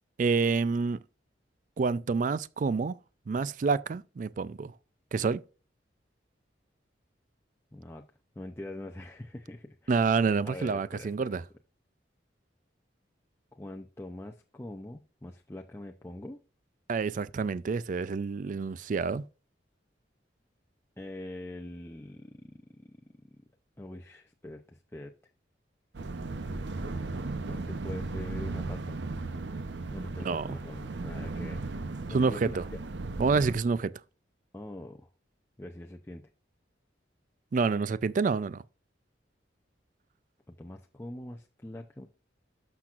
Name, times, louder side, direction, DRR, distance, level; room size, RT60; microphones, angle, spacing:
voice 1, 0.2-1.0 1.8-3.0 3.3-4.7 5.1-5.4 9.9-11.4 16.9-19.2 30.2-30.6 32.1-32.6 33.2-33.9 37.5-38.6, right 4 dB, 45° right, 0.3 m, -28 dB
voice 2, 7.7-8.0 8.4-10.0 10.4-11.3 13.5-16.4 21.0-23.0 23.8-25.1 27.4-29.0 29.9-31.6 32.1-32.8 34.5-35.1 35.6-36.3 40.5-42.1, left 1 dB, 15° left, 0.5 m, -43 dB
sound 1, 25.9-33.6, right 3 dB, 75° right, 0.7 m, -36 dB
12.0 x 5.9 x 2.4 m
head